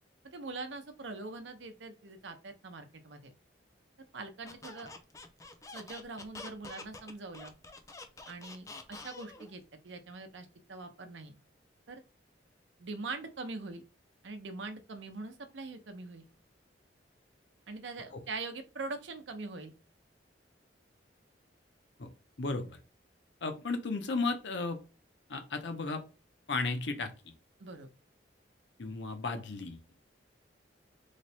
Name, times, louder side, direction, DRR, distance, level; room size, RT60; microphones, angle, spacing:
voice 1, 0.2-3.2 4.1-4.9 5.7-7.5 8.3-11.4 11.9-12.0 12.8-13.8 14.2-16.3 17.7-19.7 27.6-27.9, right 3 dB, 80° right, 7 dB, 0.7 m, -43 dB
Squeak, 4.4-9.5, left 3 dB, 20° left, 0.4 m, -47 dB
voice 2, 22.4-22.8 23.4-24.8 25.3-26.0 26.5-27.1 28.8-29.8, left 3 dB, 75° left, 7 dB, 0.7 m, -34 dB
3.2 x 2.1 x 4.1 m, 0.33 s
head